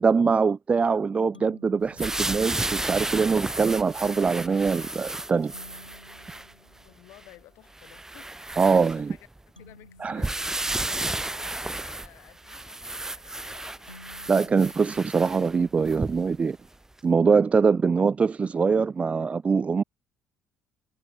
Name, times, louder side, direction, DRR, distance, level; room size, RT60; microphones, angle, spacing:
voice 1, 0.0-5.5 8.6-9.1 10.0-10.3 14.3-16.6 17.0-19.8, right 5 dB, 25° right, 0.4 m, -23 dB
sound 1, 1.3-3.0 5.5-7.5 9.6-11.7 13.9-15.9, left 1 dB, 90° left, 0.9 m, -54 dB
sound 2, 2.0-6.5 7.1-7.2 7.8-9.4 10.2-16.4 17.0-17.1, right 2 dB, 10° right, 0.9 m, -33 dB
sound 3, 2.3-9.1, left 2 dB, 15° left, 7.1 m, -55 dB
voice 2, 6.8-8.4 8.9-9.3 9.6-10.6 10.9-14.2, left 18 dB, 60° left, 2.5 m, -53 dB
figure-of-eight pair, 50°, 5 cm